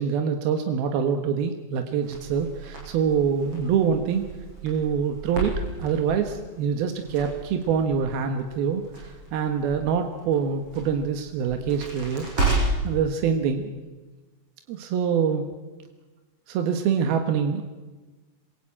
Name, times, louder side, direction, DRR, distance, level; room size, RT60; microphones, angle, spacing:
voice 1, 0.0-4.3 4.6-12.3 12.8-13.7 14.7-15.5 16.5-17.6, right 7 dB, 85° right, 5 dB, 3.3 m, -25 dB
Crackle, 2.0-12.9, right 2 dB, 35° right, 8.6 m, -33 dB
27.0 x 24.0 x 8.7 m, 1.3 s
omnidirectional pair, 4.2 m